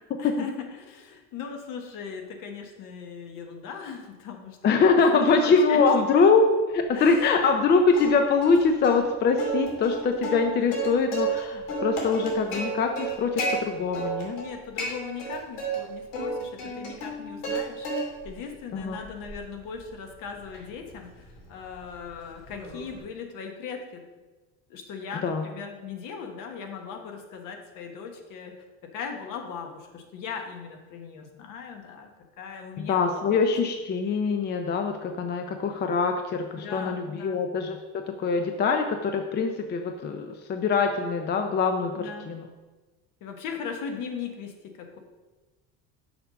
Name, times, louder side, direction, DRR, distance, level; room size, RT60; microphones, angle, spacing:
voice 1, 0.2-4.8 5.1-5.8 6.9-7.4 14.3-17.9 18.2-24.0 24.7-28.5 28.9-32.1 32.4-33.4 36.5-37.4 41.9-42.3 43.2-45.0, left 6 dB, 60° left, 4 dB, 1.4 m, -38 dB
voice 2, 4.6-6.4 6.7-14.4 18.7-19.0 25.2-25.4 32.8-42.5, left 4 dB, 30° left, 5 dB, 0.5 m, -23 dB
Plucked string instrument, 7.9-8.6 8.8-9.0 9.4-11.4 11.7-13.5 13.9-14.5 14.8-15.8 16.1-17.6 17.8-18.3 18.8-23.0, right 3 dB, 85° left, 2.7 m, -32 dB
6.9 x 5.5 x 5.1 m, 1.2 s
cardioid pair, 140°, 35 cm